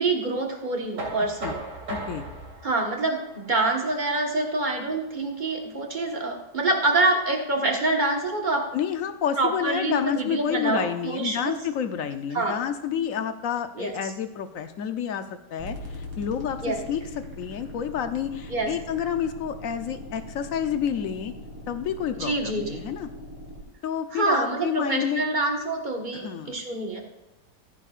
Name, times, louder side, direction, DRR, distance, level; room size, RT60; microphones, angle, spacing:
voice 1, 0.0-1.6 2.6-8.6 9.4-11.6 12.3-12.6 13.8-14.1 16.6-16.8 18.5-18.7 22.2-22.8 24.1-27.0, right 2 dB, 30° right, 1 dB, 1.4 m, -26 dB
Knock, 1.0-6.8, right 1 dB, 85° right, 3.4 m, -39 dB
voice 2, 1.9-2.2 8.7-15.2 15.5-17.0 17.4-21.3 21.7-23.1 23.8-25.2 26.1-26.6, left 8 dB, 60° left, 9 dB, 1.0 m, -29 dB
sound 1, 15.6-23.6, left 1 dB, 10° right, 2.9 m, -41 dB
14.5 x 10.0 x 2.5 m, 0.96 s
omnidirectional pair, 1.9 m